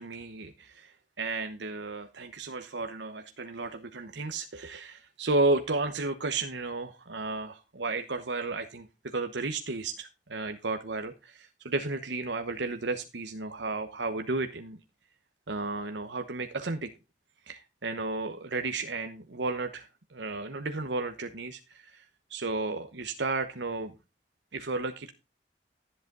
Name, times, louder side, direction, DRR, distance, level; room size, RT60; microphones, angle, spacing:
voice 1, 0.0-14.8 15.5-16.9 17.5-23.9 24.5-25.1, right 3 dB, 85° right, 7 dB, 1.0 m, -33 dB
13.5 x 8.0 x 3.9 m, 0.28 s
head